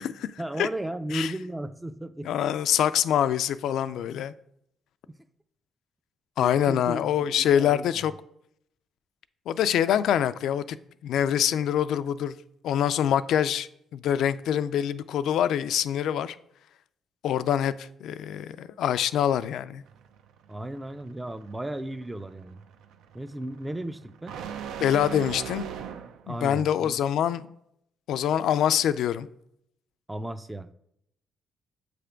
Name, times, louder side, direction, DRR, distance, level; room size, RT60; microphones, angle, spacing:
voice 1, 0.4-2.3 5.1-5.2 6.4-7.1 7.4-8.0 20.5-22.6 23.1-24.4 26.3-27.0 30.1-30.7, right 1 dB, 15° right, 0.4 m, -35 dB
voice 2, 2.2-4.3 6.4-8.1 9.5-10.8 11.0-12.3 12.6-16.4 17.2-19.8 24.8-25.7 26.3-27.5 28.1-29.3, left 10 dB, 75° left, 0.3 m, -25 dB
sound 1, 19.9-26.3, right 8 dB, 85° right, 0.4 m, -40 dB
7.8 x 3.4 x 5.0 m
cardioid pair, 90°, 0 cm